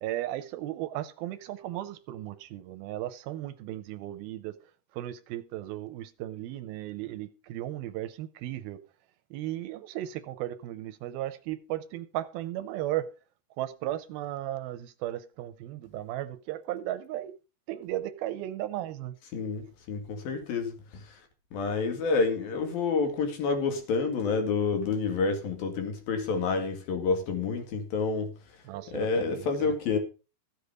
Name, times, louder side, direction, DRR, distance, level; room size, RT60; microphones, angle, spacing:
voice 1, 0.0-4.5 4.9-8.8 9.3-13.2 13.6-17.3 17.7-19.1 28.7-29.8, right 13 dB, 80° right, 2.5 m, -35 dB
voice 2, 19.3-21.0 21.5-28.3 28.9-30.0, left 4 dB, 70° left, 3.7 m, -28 dB
14.0 x 8.2 x 5.1 m
omnidirectional pair, 4.6 m